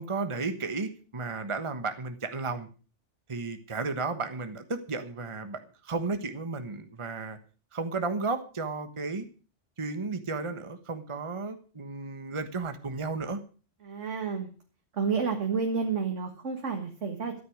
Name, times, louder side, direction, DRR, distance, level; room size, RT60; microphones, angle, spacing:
voice 1, 0.0-2.7 3.3-7.4 7.7-9.3 9.8-13.4, right 3 dB, 25° right, 9 dB, 1.2 m, -33 dB
voice 2, 13.8-14.5 14.9-17.4, right 5 dB, 80° right, 4 dB, 2.0 m, -30 dB
13.5 x 9.4 x 6.3 m, 0.37 s
omnidirectional pair, 1.2 m